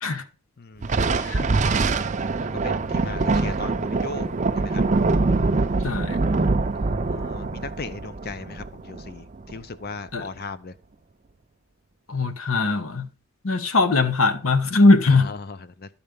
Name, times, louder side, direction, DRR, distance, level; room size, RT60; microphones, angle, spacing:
voice 1, 0.6-1.2 2.6-4.8 6.8-9.2 9.5-10.7 15.2-15.9, left 4 dB, 45° left, 0.6 m, -37 dB
Thunder, 0.8-9.6, right 3 dB, 35° right, 0.5 m, -24 dB
voice 2, 5.8-6.2 10.1-10.3 12.1-13.1 13.4-15.3, left 3 dB, 70° left, 1.1 m, -20 dB
12.0 x 4.4 x 5.1 m
head